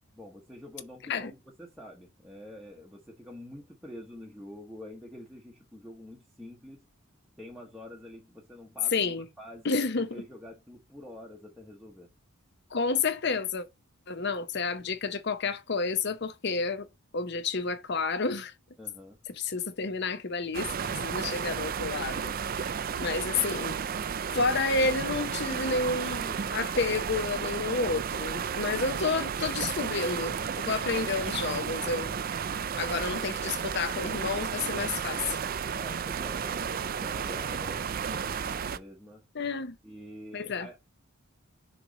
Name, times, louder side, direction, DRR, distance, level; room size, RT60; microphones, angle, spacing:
voice 1, 0.1-6.8 7.4-12.1 18.8-19.2 35.8-39.2 39.8-40.8, left 1 dB, ahead, 0.9 m, -47 dB
voice 2, 8.9-9.3 9.6-10.2 12.7-13.7 14.1-16.9 17.1-18.5 19.4-20.7 21.0-23.8 24.3-32.1 32.7-35.4 39.3-39.8 40.3-40.7, left 4 dB, 50° left, 0.7 m, -30 dB
sound 1, 20.5-38.8, right 7 dB, 40° right, 0.4 m, -33 dB
6.6 x 3.1 x 5.0 m
head